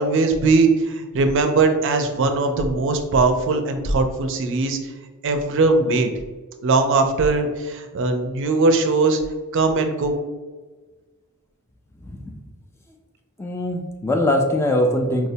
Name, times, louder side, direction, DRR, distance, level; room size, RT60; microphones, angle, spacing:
voice 1, 0.0-4.8 5.2-6.1 6.6-9.2 9.5-10.2, right 3 dB, 60° right, 6 dB, 0.4 m, -20 dB
voice 2, 12.0-12.4 13.4-15.3, left 1 dB, 10° left, 2 dB, 0.3 m, -22 dB
4.5 x 2.1 x 2.7 m, 1.3 s
head